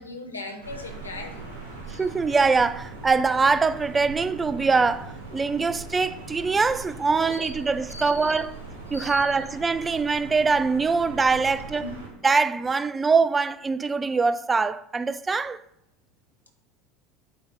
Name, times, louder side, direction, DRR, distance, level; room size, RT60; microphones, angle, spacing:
voice 1, 0.0-1.5 1.9-2.1 5.5-5.7 7.1-8.4 8.9-9.4 11.8-12.0, left 2 dB, 85° left, 1.0 m, -39 dB
sound 1, 0.6-12.1, right 3 dB, 80° right, 1.9 m, -40 dB
voice 2, 1.9-8.6 8.9-11.9 12.2-15.6, right 4 dB, 20° right, 0.4 m, -23 dB
8.4 x 4.0 x 5.1 m
figure-of-eight pair, 70°, 0 cm